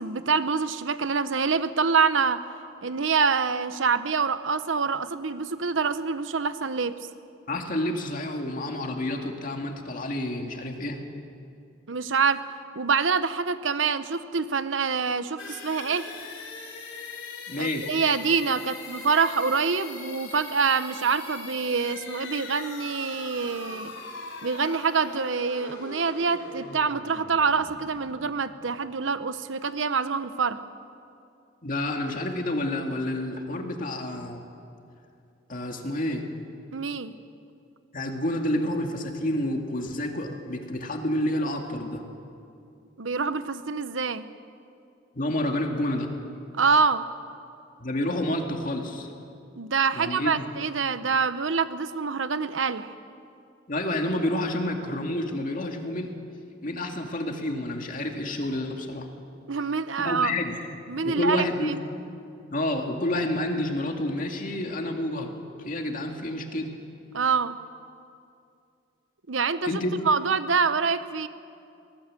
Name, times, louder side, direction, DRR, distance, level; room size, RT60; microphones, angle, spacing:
voice 1, 0.0-2.4 2.8-6.9 11.9-12.4 12.7-16.1 17.6-23.9 24.4-30.6 36.7-37.1 43.0-44.2 46.6-47.0 49.6-52.9 59.5-60.3 60.9-61.8 67.1-67.6 69.3-71.3, right 5 dB, 85° right, 12 dB, 0.9 m, -26 dB
voice 2, 7.5-11.0 17.5-17.9 31.6-34.4 35.5-36.2 37.9-42.0 45.2-46.1 47.8-49.1 49.9-50.5 53.7-56.1 56.6-59.1 60.0-60.6 61.0-61.8 62.5-65.3 65.6-66.7 69.6-70.0, left 1 dB, 45° left, 3 dB, 2.3 m, -29 dB
sound 1, 15.4-29.1, left 4 dB, 80° left, 3.4 m, -41 dB
23.0 x 18.5 x 7.7 m, 2.5 s
head